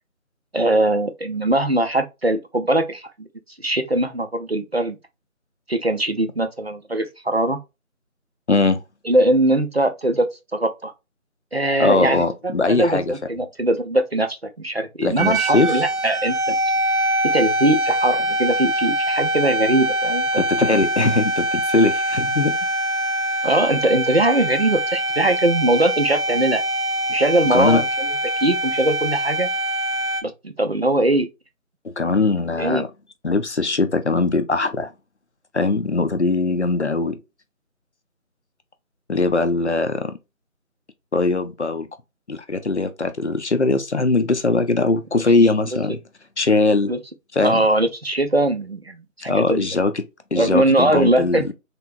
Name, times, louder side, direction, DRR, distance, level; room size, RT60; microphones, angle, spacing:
voice 1, 0.5-3.3 3.6-5.0 5.7-7.6 9.1-10.9 11.5-16.6 17.3-20.4 23.4-26.6 27.1-28.1 28.4-29.5 30.2-31.3 32.6-32.8 46.9-47.0 47.4-49.7 50.4-51.5, right 1 dB, 50° right, 0.5 m, -21 dB
voice 2, 8.5-8.8 11.8-13.1 15.0-15.8 20.4-22.5 27.5-27.8 32.0-32.9 33.2-34.9 35.5-37.2 39.1-40.1 41.1-41.9 42.3-46.0 46.4-46.9 47.3-47.6 49.3-49.9 50.3-51.5, left 3 dB, 55° left, 0.6 m, -20 dB
sound 1, 15.2-30.2, right 1 dB, 85° right, 1.1 m, -23 dB
3.5 x 2.9 x 2.4 m
figure-of-eight pair, 170°, 42 cm